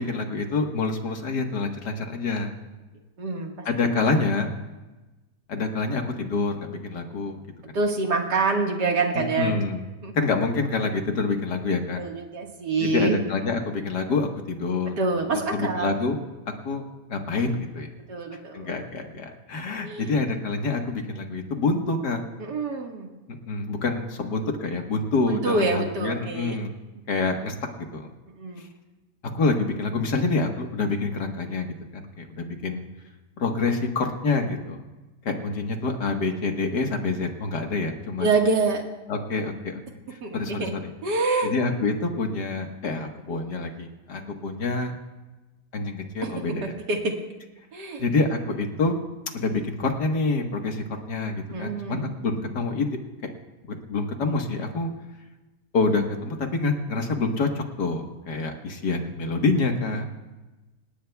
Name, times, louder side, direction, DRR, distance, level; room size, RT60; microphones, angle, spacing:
voice 1, 0.0-2.6 3.7-4.5 5.5-7.4 7.7-7.8 9.2-9.8 10.1-12.0 12.8-14.9 15.3-16.2 16.6-16.8 17.1-17.9 18.5-22.2 23.3-26.7 27.1-28.1 29.3-32.8 33.4-34.8 35.3-38.3 39.1-39.8 40.1-40.9 41.4-44.9 45.7-46.7 48.0-48.9 49.3-53.0 53.7-54.9 55.7-60.0, left 3 dB, 75° left, 3 dB, 2.1 m, -27 dB
voice 2, 3.2-3.5 7.7-9.6 10.0-10.2 12.0-13.2 14.9-15.9 18.1-18.8 19.8-20.1 22.4-23.1 25.3-26.6 28.4-28.7 38.2-38.8 40.2-40.7 41.0-41.5 46.2-47.2 47.7-48.0 51.5-52.1, right 3 dB, 80° right, 1 dB, 2.4 m, -26 dB
27.5 x 18.0 x 2.3 m, 1.1 s
omnidirectional pair, 1.8 m